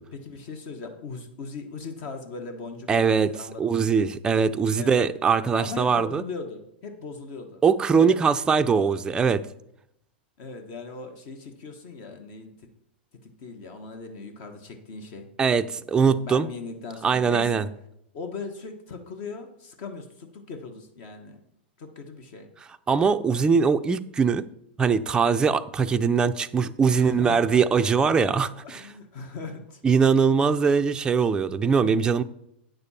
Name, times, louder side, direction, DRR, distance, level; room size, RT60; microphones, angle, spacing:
voice 1, 0.1-4.0 4.8-5.1 5.6-7.6 8.0-8.2 10.4-12.7 13.2-15.3 16.2-17.7 18.1-21.4 21.8-22.5 26.9-27.6 28.6-29.8, left 4 dB, 55° left, 1.2 m, -39 dB
voice 2, 2.9-3.3 3.6-6.2 7.6-9.4 15.4-16.5 17.0-17.7 22.9-24.4 24.8-28.8 29.8-32.2, right 5 dB, 15° right, 0.4 m, -21 dB
9.1 x 6.7 x 4.2 m
hypercardioid pair, 115°, 6 cm